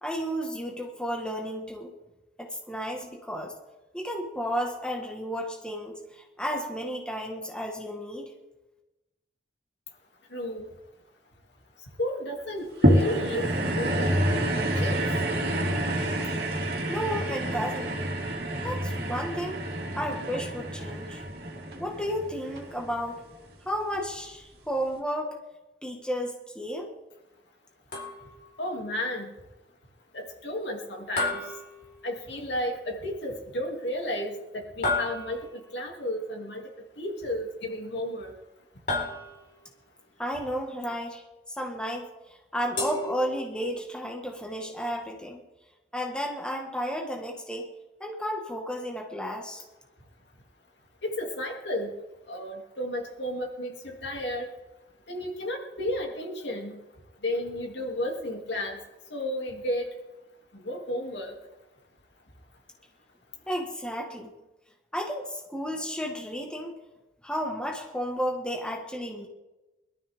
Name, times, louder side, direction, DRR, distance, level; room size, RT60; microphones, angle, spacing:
voice 1, 0.0-1.9 2.4-3.6 3.9-8.3 16.9-18.0 18.6-19.6 19.9-21.2 21.7-23.2 23.6-25.3 25.8-26.9 40.2-45.4 45.9-47.7 48.0-49.6 63.5-64.3 64.9-66.7 67.2-69.3, equal, 5° left, 0 dB, 1.5 m, -33 dB
voice 2, 10.3-10.7 11.8-15.1 28.6-29.3 30.1-31.6 32.0-38.4 51.0-51.9 52.2-54.5 55.1-58.8 59.1-59.9 60.5-61.4, left 1 dB, 80° left, 1 dB, 2.6 m, -33 dB
sound 1, 12.8-23.3 23.9-24.0, right 1 dB, 60° right, 2.4 m, -28 dB
sound 2, 27.9-28.5 31.2-32.4 34.8-35.7 38.9-39.7 42.8-43.8, left 2 dB, 50° left, 4.5 m, -32 dB
22.0 x 12.5 x 3.6 m, 1.0 s
head